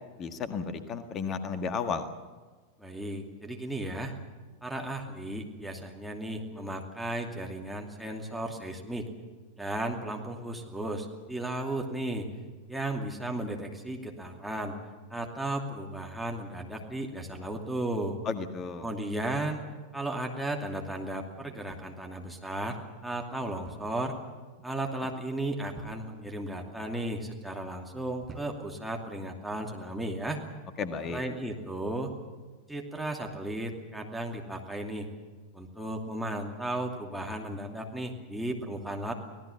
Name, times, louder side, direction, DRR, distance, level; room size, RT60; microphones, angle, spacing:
voice 1, 0.2-2.1 18.2-18.9 30.8-31.2, left 5 dB, 30° left, 9 dB, 1.7 m, -33 dB
voice 2, 2.8-4.1 4.6-9.1 9.6-12.3 12.7-14.7 15.1-18.2 18.8-19.6 19.9-24.1 24.6-30.4 31.1-32.1 32.7-35.1 35.5-39.1, right 1 dB, ahead, 0 dB, 2.6 m, -35 dB
sound 1, 21.7-22.2 23.6-24.0 24.3-24.7 25.7-26.3 27.0-27.4 28.2-28.9 29.8-30.1, right 3 dB, 15° right, 5.0 m, -49 dB
25.5 x 18.0 x 7.1 m, 1.4 s
figure-of-eight pair, 90°, 0 cm